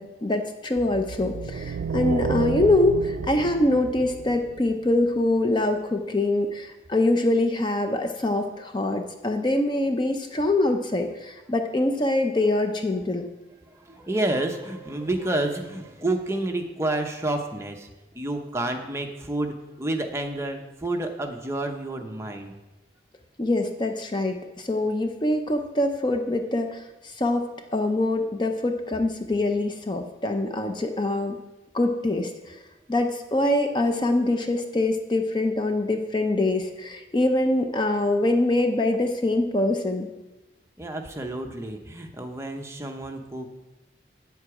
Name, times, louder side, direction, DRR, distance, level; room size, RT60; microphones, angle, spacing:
voice 1, 0.0-13.3 23.4-31.4 31.7-32.6 32.9-40.1, left 2 dB, 25° left, 5 dB, 0.5 m, -24 dB
sound 1, 0.8-5.2, right 5 dB, 70° right, 0.3 m, -31 dB
voice 2, 13.7-17.9 18.1-22.5 40.8-43.5, right 1 dB, 15° right, 3 dB, 0.8 m, -29 dB
8.7 x 8.1 x 4.8 m, 1.1 s
head